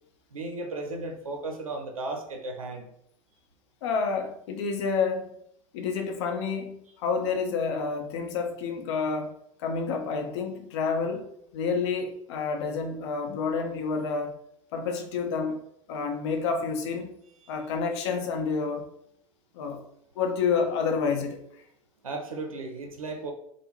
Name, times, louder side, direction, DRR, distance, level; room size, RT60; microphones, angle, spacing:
voice 1, 0.3-2.9 17.4-17.5 22.0-23.3, right 2 dB, 80° right, 4 dB, 0.5 m, -35 dB
voice 2, 3.8-5.3 5.7-9.3 9.6-14.3 14.7-15.6 15.9-17.1 17.5-18.9 19.5-19.8 20.2-21.4, left 5 dB, 55° left, 4 dB, 0.6 m, -29 dB
3.3 x 2.0 x 3.0 m, 0.73 s
figure-of-eight pair, 85°, 17 cm